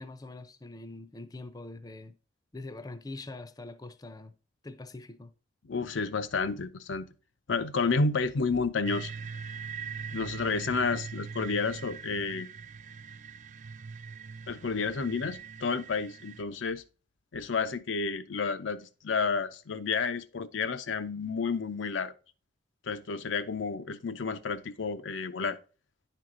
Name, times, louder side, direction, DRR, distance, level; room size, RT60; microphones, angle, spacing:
voice 1, 0.0-2.1 2.5-4.3 4.6-5.3 10.8-11.1, left 2 dB, 20° left, 0.5 m, -43 dB
voice 2, 5.6-7.1 7.5-9.1 10.1-12.5 14.5-16.8 17.3-22.1 22.9-25.6, left 4 dB, 85° left, 0.6 m, -31 dB
sound 1, 8.9-16.4, right 5 dB, 40° right, 0.3 m, -41 dB
10.0 x 4.6 x 3.7 m
head